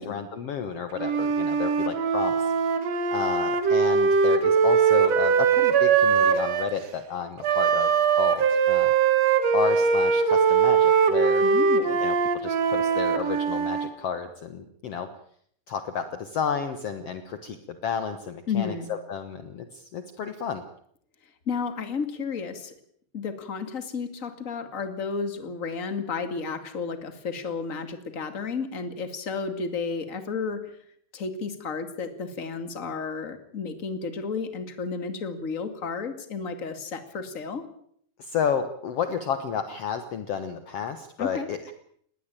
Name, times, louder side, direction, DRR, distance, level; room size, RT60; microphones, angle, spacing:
voice 1, 0.0-2.8 3.1-8.9 9.5-11.4 12.0-15.1 15.7-20.6 38.2-41.7, left 7 dB, 70° left, 10 dB, 1.4 m, -31 dB
Wind instrument woodwind instrument, 1.0-6.7 7.4-13.9, right 6 dB, 50° right, 2.4 m, -21 dB
voice 2, 11.4-12.0 18.5-18.9 21.5-22.7 23.1-30.8 31.1-37.7 41.2-41.5, left 5 dB, 30° left, 9 dB, 1.8 m, -32 dB
20.0 x 18.5 x 8.9 m, 0.66 s
omnidirectional pair, 4.5 m